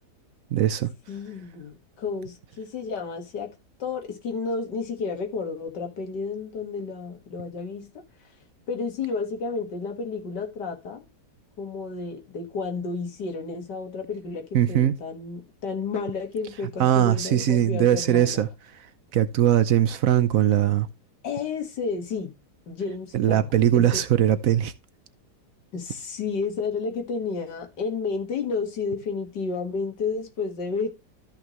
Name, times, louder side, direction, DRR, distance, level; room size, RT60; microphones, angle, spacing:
voice 1, 0.5-0.9 14.5-14.9 16.8-18.5 19.1-20.9 23.1-24.7, right 11 dB, 65° right, 1.0 m, -20 dB
voice 2, 1.1-3.5 3.8-8.0 8.7-11.1 11.6-18.4 21.2-22.3 22.7-24.0 25.7-30.9, left 4 dB, 80° left, 2.3 m, -31 dB
13.5 x 5.7 x 3.0 m
omnidirectional pair, 1.8 m